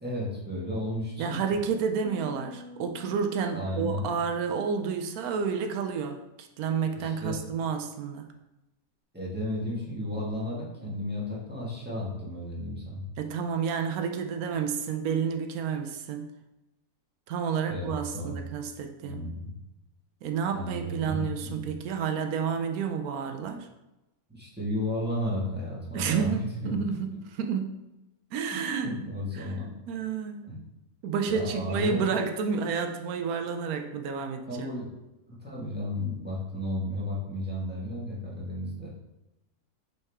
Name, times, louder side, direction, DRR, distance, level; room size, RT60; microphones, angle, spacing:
voice 1, 0.0-1.4 3.5-4.1 6.9-7.4 9.1-13.0 17.7-18.4 19.0-19.5 20.5-21.7 24.3-27.2 28.5-29.7 30.5-30.6 31.2-32.0 34.5-34.9 35.3-38.9, left 1 dB, 5° right, -7 dB, 1.7 m, -33 dB
voice 2, 1.2-8.3 13.2-16.3 17.3-19.2 20.2-23.7 25.9-27.0 27.3-27.7 28.3-28.9 29.3-29.5 29.9-30.5 31.0-34.7, right 6 dB, 90° right, 6 dB, 1.1 m, -30 dB
sound 1, 2.0-5.4, equal, 55° right, 0.4 m, -48 dB
5.8 x 5.4 x 3.6 m, 0.97 s
omnidirectional pair, 1.5 m